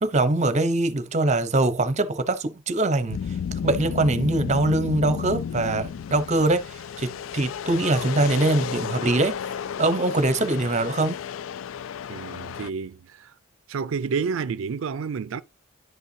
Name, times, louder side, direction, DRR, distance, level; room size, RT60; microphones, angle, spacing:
voice 1, 0.0-3.2 3.6-9.4 9.8-11.2, right 2 dB, 35° right, 0.7 m, -23 dB
sound 1, 3.1-12.7, left 7 dB, 85° left, 0.4 m, -32 dB
voice 2, 12.1-13.3 13.7-15.4, right 5 dB, 80° right, 0.4 m, -30 dB
11.0 x 5.6 x 2.7 m
head